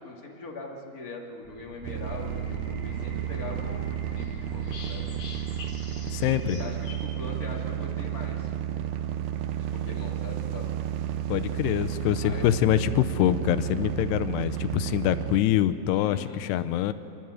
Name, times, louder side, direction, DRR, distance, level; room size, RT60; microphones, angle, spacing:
voice 1, 0.0-5.2 5.5-5.6 6.3-8.9 9.6-10.7 12.2-12.5 15.9-16.7, left 3 dB, 30° left, 0 dB, 1.7 m, -42 dB
sound 1, 1.4-12.8, equal, 15° right, 4.2 m, -45 dB
sound 2, 1.8-15.4, right 11 dB, 85° right, 2.9 m, -32 dB
sound 3, 2.8-7.9, left 3 dB, 50° left, 3.6 m, -46 dB
voice 2, 6.1-6.6 11.3-16.9, left 12 dB, 90° left, 12 dB, 2.8 m, -25 dB
29.5 x 11.5 x 9.4 m, 2.8 s
omnidirectional pair, 4.7 m